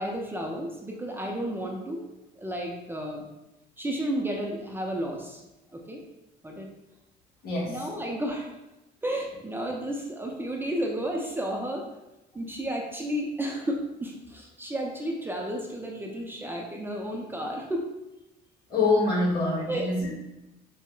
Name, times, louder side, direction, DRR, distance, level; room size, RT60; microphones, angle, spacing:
voice 1, 0.0-2.1 2.4-3.3 3.8-5.4 5.7-6.0 6.4-6.7 7.7-8.5 9.0-11.9 12.3-17.8 19.7-19.9, right 1 dB, 10° right, 0 dB, 0.4 m, -32 dB
voice 2, 7.4-7.9 18.7-20.1, left 2 dB, 70° left, -5 dB, 1.3 m, -25 dB
5.1 x 2.0 x 2.2 m, 0.95 s
cardioid pair, 110°, 17 cm